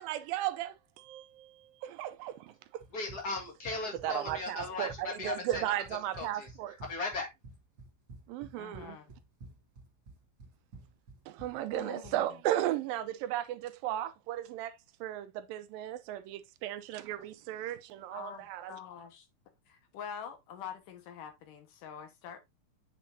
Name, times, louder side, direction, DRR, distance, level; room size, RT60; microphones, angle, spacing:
voice 1, 0.0-2.8 4.0-6.7 8.3-9.0 11.3-14.7 15.0-18.8, right 13 dB, 80° right, 2.3 m, -35 dB
Run, 2.8-12.2, right 3 dB, 45° right, 1.7 m, -51 dB
voice 2, 2.9-5.7 6.2-7.3, left 3 dB, 35° left, 1.6 m, -37 dB
voice 3, 8.6-9.1 11.7-12.2 18.1-19.3 19.7-22.4, left 8 dB, 70° left, 2.7 m, -45 dB
8.4 x 5.8 x 2.7 m
omnidirectional pair, 4.1 m